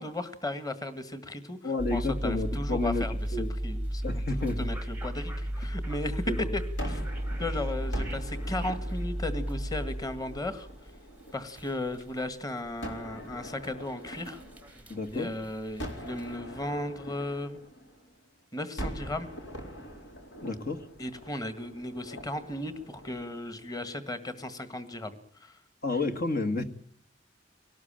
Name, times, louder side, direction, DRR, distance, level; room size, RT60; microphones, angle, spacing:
voice 1, 0.0-1.6 1.9-7.0 7.4-10.7 11.3-14.4 15.1-17.6 18.5-19.3 21.0-25.6, left 1 dB, 20° left, 1.7 m, -36 dB
voice 2, 1.6-3.5 4.0-4.7 6.3-6.6 7.4-7.5 14.9-15.3 20.4-20.8 25.8-26.6, left 2 dB, 50° left, 1.6 m, -31 dB
sound 1, 1.8-16.2, equal, 10° right, 0.9 m, -35 dB
Gunshot gunfire, 6.8-11.9 12.8-15.2 15.8-18.3 18.8-24.0, equal, 80° left, 4.0 m, -43 dB
24.0 x 18.5 x 8.9 m
head